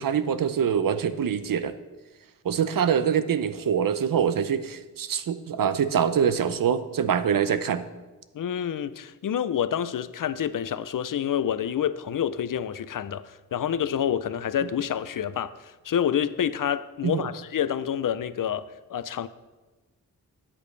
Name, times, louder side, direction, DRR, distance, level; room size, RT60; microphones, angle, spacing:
voice 1, 0.0-1.7 2.4-7.9 17.0-17.3, right 8 dB, 65° right, 0.7 m, -24 dB
voice 2, 8.3-19.3, left 9 dB, 65° left, 0.6 m, -28 dB
13.5 x 8.7 x 3.3 m
wide cardioid pair, 85°, 36 cm